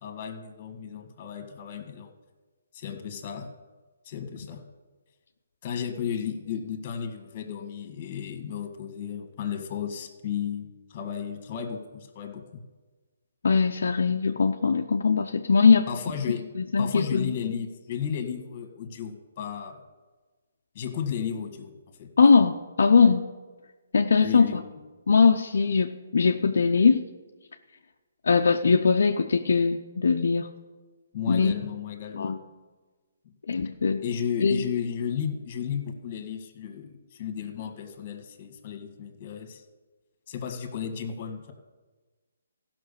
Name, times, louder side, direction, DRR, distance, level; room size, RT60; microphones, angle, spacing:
voice 1, 0.0-2.1 2.7-3.5 4.0-4.6 5.6-12.6 15.9-19.8 20.7-21.7 22.0-22.1 24.2-24.7 31.1-32.3 34.0-39.6 40.3-41.5, left 8 dB, 40° left, 7 dB, 1.8 m, -34 dB
voice 2, 13.4-15.9 16.6-17.3 22.2-23.2 23.9-24.6 25.1-27.0 28.3-30.5 31.3-31.5 32.1-32.4 33.5-34.0 34.4-34.6, left 5 dB, 70° left, 3 dB, 0.7 m, -21 dB
14.5 x 6.1 x 6.8 m, 1.3 s
hypercardioid pair, 150°, 0 cm